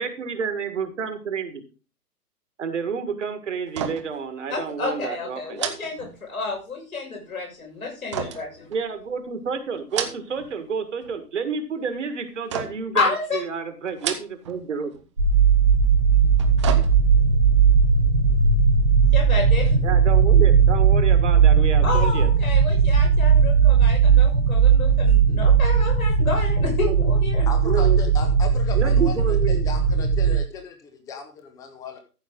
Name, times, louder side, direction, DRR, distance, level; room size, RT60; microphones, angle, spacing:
voice 1, 0.0-1.6 2.6-5.6 8.7-14.9 19.8-22.3 26.8-26.9 27.6-28.0 28.7-29.6, right 6 dB, 50° right, 9 dB, 1.8 m, -29 dB
sound 1, 3.7-4.2 4.5-4.7 5.5-6.6 8.1-9.2 9.8-10.5 10.8-11.4 12.5-13.0 13.9-14.6 14.9-15.1 16.2-17.3 17.7-17.8, right 8 dB, 20° right, 0.8 m, -32 dB
voice 2, 4.5-8.7 12.9-13.4 19.1-19.9 21.8-27.5, left 4 dB, 65° left, 0 dB, 6.5 m, -30 dB
sound 2, 15.2-30.4, right 6 dB, 85° right, 3.1 m, -17 dB
voice 3, 27.5-32.0, left 5 dB, 5° left, 7 dB, 0.9 m, -36 dB
14.0 x 7.3 x 3.8 m, 0.34 s
figure-of-eight pair, 130°, 47 cm